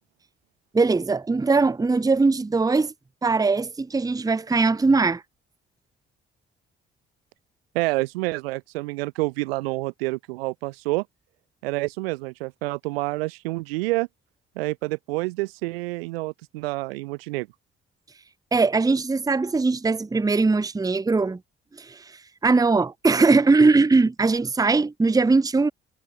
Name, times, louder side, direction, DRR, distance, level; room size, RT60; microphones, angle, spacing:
voice 1, 0.7-2.9 3.2-5.2 18.5-21.4 21.8-25.7, right 3 dB, 10° right, 0.7 m, -20 dB
voice 2, 7.7-11.0 11.6-14.1 14.6-17.5, right 22 dB, 80° right, 1.1 m, -28 dB
hypercardioid pair, 45°, 29 cm